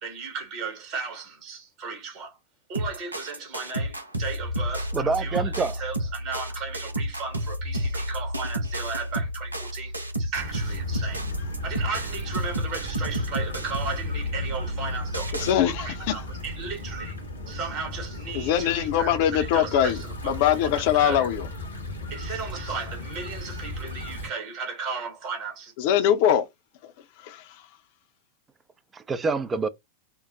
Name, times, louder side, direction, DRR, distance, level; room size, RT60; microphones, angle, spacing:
voice 1, 0.0-2.4 2.7-11.2 11.6-17.1 17.5-20.6 21.0-21.3 22.1-25.7, right 5 dB, 45° right, 1.5 m, -35 dB
sound 1, 2.7-15.5, equal, 80° right, 0.8 m, -31 dB
voice 2, 4.9-5.8 28.9-29.7, right 4 dB, 20° right, 0.5 m, -26 dB
sound 2, 10.3-24.3, left 1 dB, 75° left, 1.4 m, -36 dB
voice 3, 15.3-16.2 18.3-21.5 25.8-26.4 26.8-26.9 27.2-27.7, left 10 dB, 50° left, 0.8 m, -23 dB
4.5 x 2.2 x 3.9 m
figure-of-eight pair, 90°, 0 cm